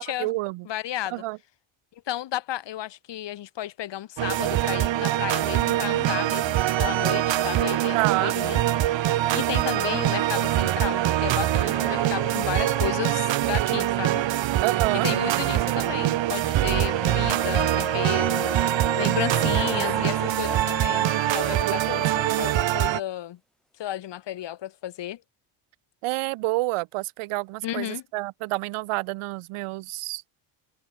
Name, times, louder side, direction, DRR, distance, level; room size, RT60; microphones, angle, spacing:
voice 1, 0.0-0.7 1.1-1.4 7.9-8.4 14.6-15.1 19.7-19.8 21.6-22.4 26.0-30.2, right 20 dB, 85° right, 2.6 m, -29 dB
voice 2, 0.7-1.2 2.1-8.6 9.3-14.2 15.0-18.5 19.0-23.4 23.8-25.2 27.6-28.0, left 12 dB, 60° left, 2.8 m, -33 dB
sound 1, 4.2-23.0, right 13 dB, 60° right, 3.4 m, -24 dB
sound 2, 6.5-13.1 13.4-13.5 16.5-21.6, equal, ahead, 5.5 m, -38 dB
cardioid pair, 115°, 50 cm